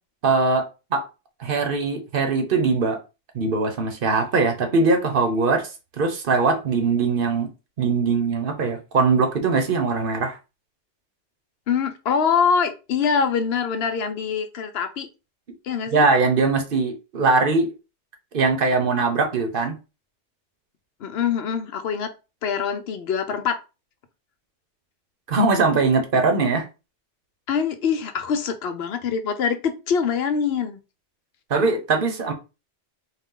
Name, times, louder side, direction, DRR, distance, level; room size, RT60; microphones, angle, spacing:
voice 1, 0.2-1.1 1.4-3.0 3.3-7.5 7.8-10.4 15.9-17.7 18.3-19.8 25.3-26.7 31.5-32.3, right 4 dB, 55° right, 0.9 m, -21 dB
voice 2, 11.7-15.1 15.6-16.0 21.0-22.1 22.4-23.6 27.5-30.8, left 6 dB, 65° left, 0.8 m, -24 dB
4.1 x 2.4 x 3.6 m
omnidirectional pair, 1.2 m